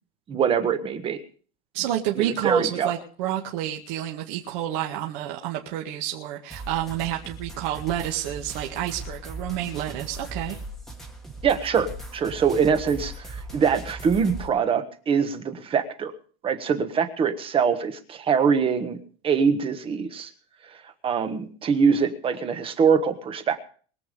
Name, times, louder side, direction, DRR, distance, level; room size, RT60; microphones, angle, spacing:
voice 1, 0.3-1.2 2.1-2.9 11.4-16.1 16.4-20.3 20.6-23.6, right 6 dB, 15° right, 8 dB, 1.3 m, -24 dB
voice 2, 1.7-10.6, right 12 dB, 50° right, 0 dB, 2.0 m, -29 dB
sound 1, 6.5-14.5, right 1 dB, ahead, 1.6 m, -39 dB
22.5 x 8.2 x 5.2 m, 0.43 s
supercardioid pair, 170°, 31 cm